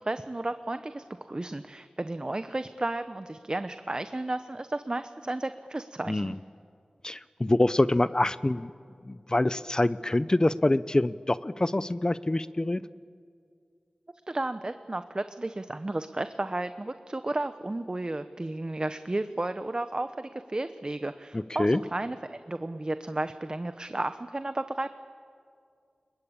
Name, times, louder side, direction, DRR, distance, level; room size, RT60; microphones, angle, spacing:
voice 1, 0.0-6.3 14.3-24.9, right 2 dB, 35° right, 10 dB, 0.9 m, -33 dB
voice 2, 7.0-8.7 9.0-12.8 21.3-21.8, left 1 dB, 30° left, 15 dB, 0.6 m, -25 dB
29.0 x 22.0 x 8.7 m, 2.3 s
wide cardioid pair, 65°, 2 cm